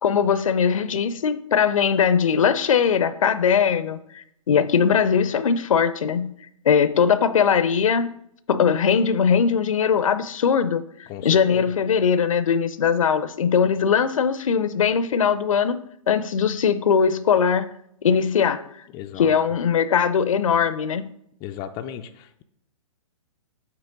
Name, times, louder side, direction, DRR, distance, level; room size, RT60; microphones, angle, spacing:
voice 1, 0.0-6.3 6.6-8.1 8.5-10.8 11.2-15.8 16.1-17.7 18.0-18.7 19.2-21.1, left 7 dB, 75° left, 13 dB, 0.5 m, -20 dB
voice 2, 11.1-11.7 18.9-19.4 21.4-22.4, left 10 dB, 20° left, 7 dB, 0.4 m, -35 dB
7.4 x 3.1 x 5.2 m, 0.73 s
hypercardioid pair, 125°, 17 cm